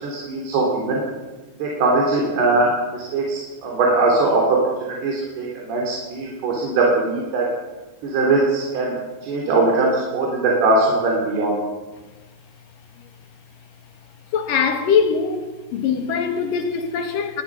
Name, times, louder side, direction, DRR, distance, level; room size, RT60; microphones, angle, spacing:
voice 1, 0.0-1.0 1.6-7.6 8.0-11.6, right 2 dB, 85° right, 5.6 m, -21 dB
voice 2, 14.3-15.5 15.7-17.4, left 6 dB, 60° left, 3.3 m, -21 dB
20.5 x 19.5 x 6.4 m
omnidirectional pair, 4.5 m